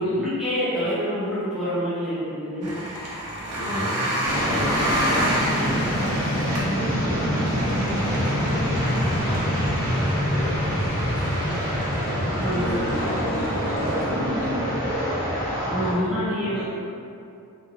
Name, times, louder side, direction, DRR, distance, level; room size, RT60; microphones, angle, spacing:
voice 1, 0.0-2.7 3.5-4.0 12.4-12.7 15.7-16.6, equal, ahead, -14 dB, 0.8 m, -27 dB
sound 1, 2.6-14.1, equal, 75° right, 0.6 m, -31 dB
voice 2, 3.5-12.0 12.6-14.9 15.8-16.6, left 1 dB, 80° left, -11 dB, 0.9 m, -36 dB
sound 2, 4.2-15.9, equal, 40° left, 0.8 m, -25 dB
2.8 x 2.1 x 2.4 m, 2.5 s
head